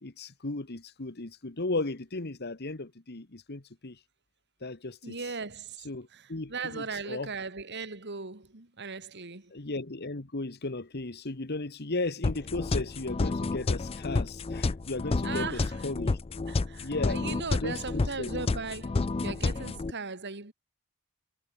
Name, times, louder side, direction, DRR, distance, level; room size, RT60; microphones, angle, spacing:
voice 1, 0.0-4.0 4.6-5.2 5.8-7.3 9.5-16.2 16.8-18.3, left 2 dB, 50° left, 1.4 m, -35 dB
voice 2, 5.0-9.5 15.2-15.8 16.5-20.5, right 4 dB, 55° right, 2.4 m, -38 dB
sound 1, 12.2-19.9, left 3 dB, 25° left, 0.4 m, -30 dB
head